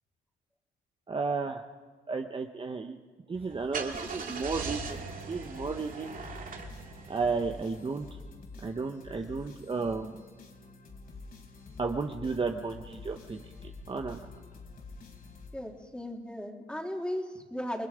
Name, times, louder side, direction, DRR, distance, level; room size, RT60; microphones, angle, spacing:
voice 1, 1.1-1.6 2.1-3.0 3.3-5.0 5.3-6.1 7.1-8.2 8.6-10.2 11.8-14.2, right 4 dB, 25° right, 4 dB, 1.1 m, -33 dB
Car / Engine starting, 3.3-8.0, right 5 dB, 45° right, 2.5 m, -40 dB
sound 1, 3.9-16.0, left 3 dB, 50° left, 4.3 m, -48 dB
voice 2, 15.5-17.9, equal, 5° left, 1 dB, 3.2 m, -36 dB
28.5 x 20.5 x 5.1 m, 1.4 s
cardioid pair, 90°, 20 cm